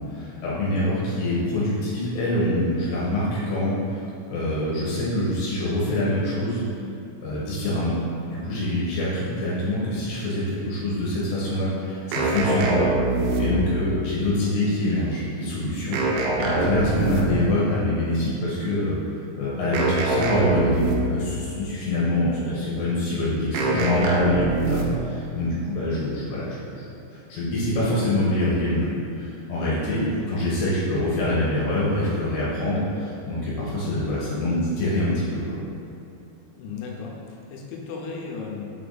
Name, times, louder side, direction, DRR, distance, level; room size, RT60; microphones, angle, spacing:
voice 1, 0.0-6.7 7.2-7.9 8.2-12.9 13.4-16.0 16.4-19.0 19.4-20.9 21.1-26.8 27.3-35.6, left 1 dB, 70° left, -8 dB, 3.2 m, -25 dB
sound 1, 12.1-13.9 15.9-17.6 19.7-21.3 23.5-25.1, right 2 dB, 85° right, 3.1 m, -23 dB
voice 2, 13.4-13.8 14.3-14.6 16.0-16.3 36.6-38.7, left 5 dB, 90° left, -1 dB, 3.2 m, -36 dB
7.1 x 3.4 x 4.0 m, 2.7 s
omnidirectional pair, 5.3 m